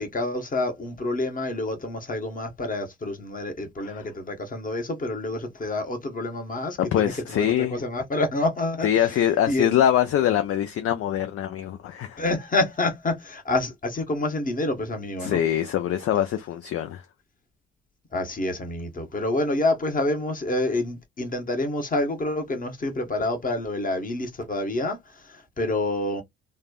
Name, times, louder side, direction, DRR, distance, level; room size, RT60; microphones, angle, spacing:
voice 1, 0.0-9.7 12.2-15.4 18.1-26.2, left 2 dB, 25° left, 1.1 m, -28 dB
voice 2, 6.8-7.8 8.8-12.2 15.2-17.0, left 10 dB, 45° left, 0.5 m, -23 dB
3.2 x 2.1 x 2.4 m
figure-of-eight pair, 45°, 31 cm